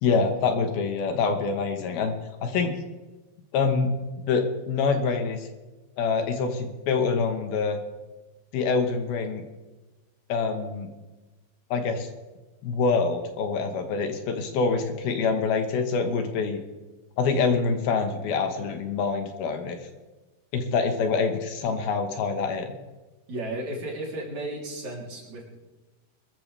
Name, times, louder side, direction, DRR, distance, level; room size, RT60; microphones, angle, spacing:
voice 1, 0.0-2.1 2.4-2.7 3.5-3.9 4.2-5.5 6.0-7.8 8.5-9.4 10.3-10.9 11.7-12.1 12.6-16.6 17.2-19.8 20.5-22.7, left 4 dB, 75° left, 6 dB, 3.0 m, -25 dB
voice 2, 23.3-25.5, right 1 dB, 45° right, -3 dB, 4.4 m, -34 dB
23.0 x 14.0 x 3.3 m, 1.2 s
omnidirectional pair, 4.6 m